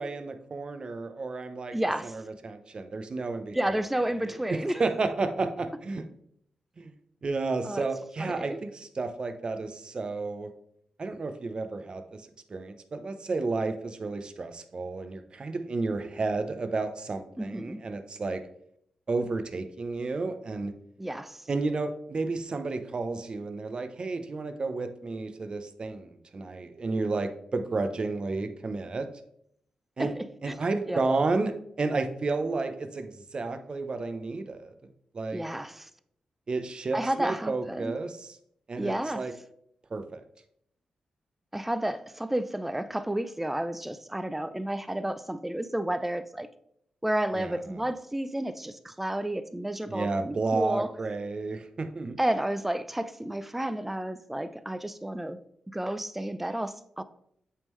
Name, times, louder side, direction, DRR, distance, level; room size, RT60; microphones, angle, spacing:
voice 1, 0.0-1.8 2.0-3.6 4.5-6.0 6.8-6.9 7.2-10.5 11.0-18.4 19.1-20.7 21.5-29.1 30.0-30.1 30.4-34.7 35.1-35.4 36.5-38.4 38.7-39.3 39.9-40.2 47.3-47.6 49.9-52.2, right 3 dB, 45° right, 0.7 m, -32 dB
voice 2, 1.7-2.2 3.5-4.8 7.6-7.9 8.2-8.6 17.4-17.8 21.0-21.4 30.0-30.1 30.5-30.6 30.9-31.0 35.3-35.9 36.9-37.9 38.8-39.2 41.5-46.5 47.0-50.9 52.2-55.4 55.7-57.0, right 1 dB, 10° right, 0.4 m, -31 dB
8.3 x 3.7 x 3.1 m
cardioid pair, 65°, 2 cm